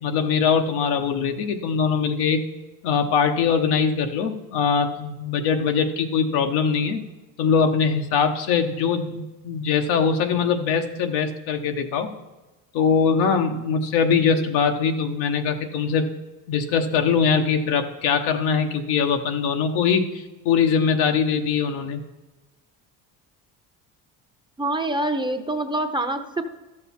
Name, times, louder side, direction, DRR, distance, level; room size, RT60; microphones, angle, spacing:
voice 1, 0.0-2.4 2.8-7.0 7.4-12.1 12.7-16.1 16.5-22.0, left 6 dB, 85° left, 5 dB, 1.1 m, -22 dB
voice 2, 24.6-26.4, right 2 dB, 10° right, 6 dB, 0.7 m, -25 dB
12.5 x 6.6 x 4.2 m, 1.1 s
cardioid pair, 100°, 38 cm